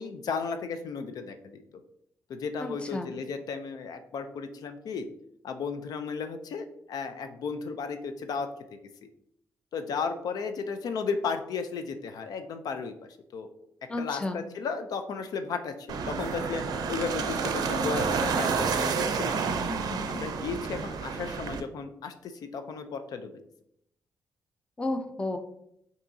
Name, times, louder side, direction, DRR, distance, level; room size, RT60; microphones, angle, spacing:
voice 1, 0.0-1.6 2.3-5.1 5.4-8.5 9.7-13.5 14.0-19.5 20.1-23.4, left 5 dB, 75° left, 8 dB, 0.4 m, -34 dB
voice 2, 2.6-3.1 13.9-14.4 19.7-20.1 24.8-25.4, left 2 dB, 15° left, 6 dB, 0.5 m, -33 dB
sound 1, 15.9-21.6, right 5 dB, 80° right, 0.5 m, -29 dB
5.4 x 2.7 x 2.6 m, 0.74 s
cardioid pair, 110°, 7 cm